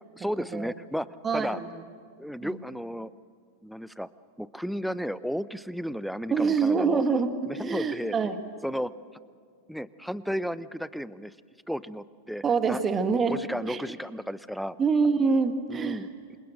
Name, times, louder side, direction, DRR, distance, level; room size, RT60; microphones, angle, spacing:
voice 1, 0.2-1.1 1.3-1.6 2.2-3.1 3.6-4.1 4.4-7.0 7.5-8.2 8.6-8.9 9.7-11.3 11.7-12.8 13.3-14.8 15.7-16.1, equal, ahead, 17 dB, 0.7 m, -33 dB
voice 2, 1.2-1.8 2.4-2.6 6.3-8.4 12.4-13.4 13.7-13.8 14.8-16.1, right 5 dB, 20° right, 9 dB, 1.9 m, -25 dB
27.5 x 27.0 x 7.8 m, 2.1 s
figure-of-eight pair, 90°, 0 cm